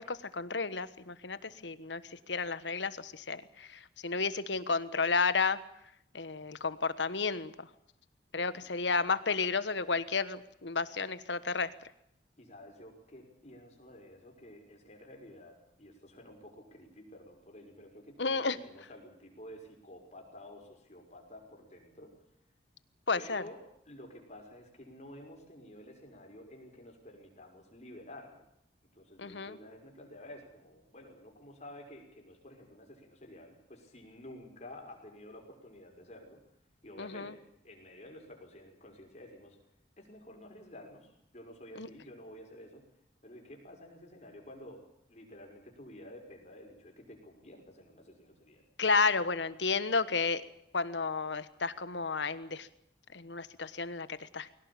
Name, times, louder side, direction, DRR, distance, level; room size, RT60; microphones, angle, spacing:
voice 1, 0.0-2.0 2.3-5.6 6.1-7.7 8.3-11.7 18.2-18.6 23.1-23.4 29.2-29.6 37.0-37.3 41.8-41.9 48.8-50.4 50.7-52.7 53.1-54.5, left 4 dB, 85° left, 14 dB, 1.3 m, -32 dB
voice 2, 8.3-8.6 12.4-22.1 23.1-23.6 23.9-28.4 28.9-36.4 36.8-39.6 40.0-42.8 43.2-48.7, left 1 dB, 40° left, 2 dB, 6.0 m, -51 dB
22.0 x 18.0 x 8.7 m, 0.77 s
head